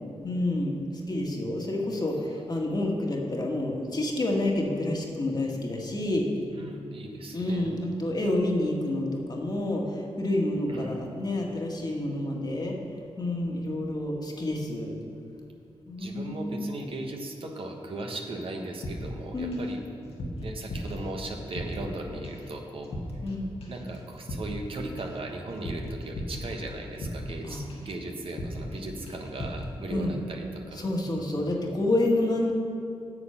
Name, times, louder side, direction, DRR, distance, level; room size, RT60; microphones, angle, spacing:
voice 1, 0.2-6.2 7.3-12.7 13.2-14.9 15.9-16.7 19.3-19.6 23.2-23.5 27.4-27.6 29.9-30.1 30.8-32.5, left 1 dB, 40° left, 0 dB, 1.7 m, -29 dB
voice 2, 6.5-7.7 10.7-11.0 16.0-19.8 20.4-22.9 23.7-30.9 31.2-31.6, right 2 dB, 60° right, 2 dB, 1.2 m, -37 dB
sound 1, 18.8-19.7 20.0-22.0 22.2-22.5 22.8-23.4 23.6-27.4 27.7-28.0 28.3-28.8 29.1-29.7, left 1 dB, 70° left, 1.7 m, -37 dB
8.3 x 7.0 x 5.8 m, 2.6 s
cardioid pair, 55°, 11 cm